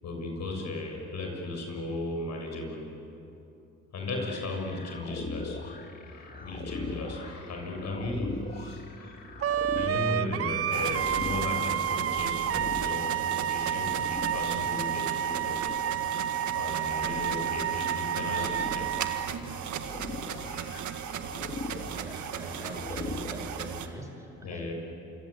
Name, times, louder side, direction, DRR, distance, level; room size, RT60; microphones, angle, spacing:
voice 1, 0.0-2.9 3.9-5.7 6.0-15.6 16.5-20.8 24.4-24.7, left 2 dB, 65° left, 2 dB, 6.9 m, -36 dB
sound 1, 4.2-23.3, left 3 dB, 30° left, 2.0 m, -42 dB
Wind instrument woodwind instrument, 9.4-19.3, right 9 dB, 50° right, 0.6 m, -30 dB
sound 2, 10.7-23.9, right 8 dB, 75° right, 1.7 m, -37 dB
voice 2, 21.9-24.7, right 1 dB, 10° right, 3 dB, 4.7 m, -42 dB
27.5 x 25.5 x 8.4 m, 2.9 s
cardioid pair, 90°, 30 cm